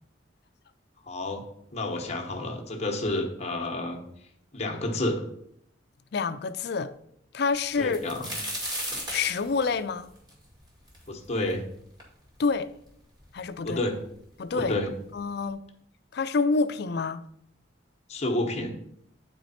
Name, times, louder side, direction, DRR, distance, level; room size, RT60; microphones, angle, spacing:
voice 1, 1.1-1.4 1.7-4.0 4.5-5.3 7.8-8.3 11.1-11.6 13.6-14.0 14.5-14.9 18.1-18.7, left 1 dB, 35° left, 1.0 m, -30 dB
voice 2, 6.1-6.9 7.3-8.0 9.1-10.1 12.4-12.7 13.3-13.8 14.4-14.8 15.1-15.6 16.1-17.2, left 4 dB, 60° left, 0.4 m, -27 dB
sound 1, 7.7-11.5 12.0-12.1 12.9-13.0 13.2-13.9 14.8-14.9 15.3-15.5, equal, 25° right, 2.1 m, -35 dB
8.9 x 4.5 x 4.2 m
head